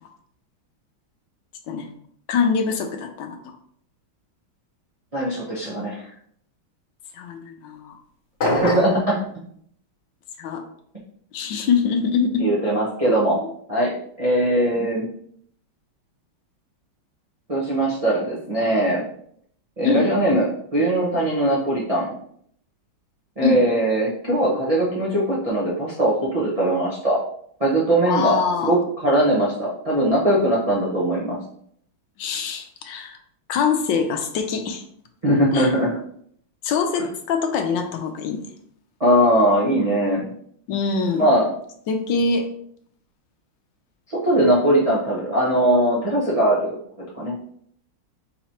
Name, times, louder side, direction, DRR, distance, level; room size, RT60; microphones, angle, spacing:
voice 1, 2.3-3.5 7.1-8.0 8.4-8.6 10.4-10.6 11.3-12.5 14.7-14.9 19.8-20.0 23.4-23.6 28.0-28.8 32.2-33.2 33.5-34.8 35.5-35.7 36.6-38.5 40.7-41.3 41.9-42.5, left 5 dB, 75° left, 5 dB, 1.2 m, -24 dB
voice 2, 5.1-6.1 8.4-9.2 12.4-13.4 13.7-15.1 17.5-19.0 19.8-22.1 23.4-27.2 27.6-31.4 35.2-35.9 39.0-40.3 41.1-41.5 44.1-46.8 47.1-47.4, right 1 dB, 60° right, -7 dB, 0.3 m, -20 dB
sound 1, 8.4-9.0, left 1 dB, 55° left, 0.7 m, -22 dB
4.4 x 3.9 x 2.8 m, 0.66 s
omnidirectional pair, 2.2 m